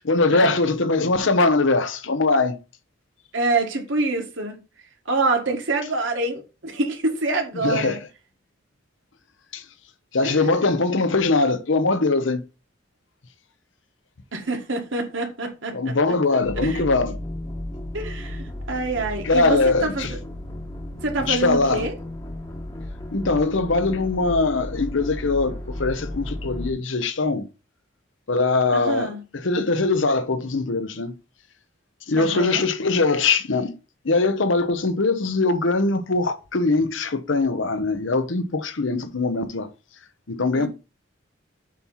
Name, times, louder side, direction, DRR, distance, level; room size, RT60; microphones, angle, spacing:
voice 1, 0.0-2.6 7.6-8.1 9.5-9.6 10.1-12.4 15.7-17.2 19.2-20.1 21.3-21.9 23.1-27.5 28.3-31.1 32.1-33.7 34.0-39.7 40.3-40.7, left 3 dB, 75° left, 0.8 m, -22 dB
voice 2, 3.3-4.6 5.1-8.0 10.2-10.6 14.3-15.9 16.6-16.8 17.9-20.2 21.0-21.9 28.7-29.2 32.2-32.6 40.5-40.7, right 2 dB, 75° right, 1.8 m, -26 dB
sound 1, 16.4-26.7, left 1 dB, 20° left, 1.0 m, -34 dB
7.5 x 3.0 x 5.6 m
head